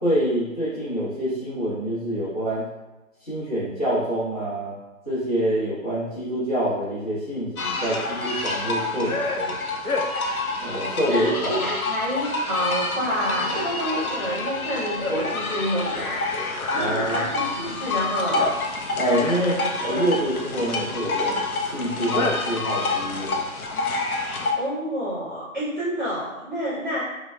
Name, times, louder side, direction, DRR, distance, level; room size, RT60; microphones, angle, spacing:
voice 1, 0.0-2.7 3.2-4.7 5.1-9.6 10.6-11.7 16.7-17.3 19.0-23.4, right 1 dB, 30° left, -11 dB, 0.9 m, -26 dB
sound 1, 7.6-24.5, left 3 dB, 85° left, 0.6 m, -27 dB
voice 2, 8.9-9.2 10.1-10.3 11.1-16.2 16.7-18.6 24.5-27.0, equal, 35° right, -11 dB, 0.8 m, -28 dB
3.3 x 2.2 x 2.2 m, 1.0 s
figure-of-eight pair, 155°, 42 cm